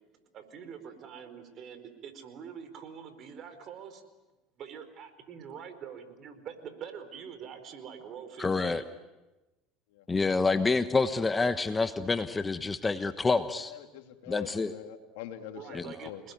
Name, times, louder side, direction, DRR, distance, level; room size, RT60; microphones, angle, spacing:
voice 1, 0.3-4.0 4.6-8.9 15.5-16.3, right 7 dB, 50° right, 10 dB, 4.6 m, -45 dB
voice 2, 8.4-8.8 10.1-13.7 14.3-14.7 15.7-15.9, left 3 dB, 20° left, 10 dB, 1.2 m, -27 dB
voice 3, 13.7-15.8 16.0-16.2, left 11 dB, 75° left, 6 dB, 2.7 m, -43 dB
27.5 x 20.5 x 9.6 m, 1.1 s
supercardioid pair, 90°, 0 cm